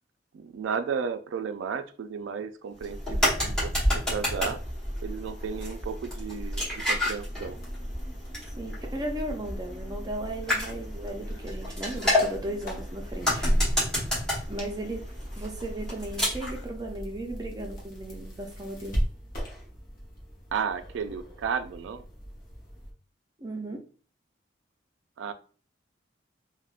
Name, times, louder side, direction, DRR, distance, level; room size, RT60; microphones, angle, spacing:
voice 1, 0.3-3.7 4.1-4.6 5.0-7.6 20.5-22.0 25.2-25.3, right 6 dB, 85° right, 9 dB, 0.3 m, -33 dB
sound 1, 2.8-16.6, left 1 dB, 5° left, 1.0 m, -30 dB
sound 2, 7.3-22.9, equal, 45° left, 0.8 m, -37 dB
voice 2, 8.6-13.5 14.5-15.1 15.4-19.0 23.4-23.8, right 1 dB, 20° right, 2 dB, 0.4 m, -36 dB
3.4 x 2.1 x 2.3 m, 0.39 s
head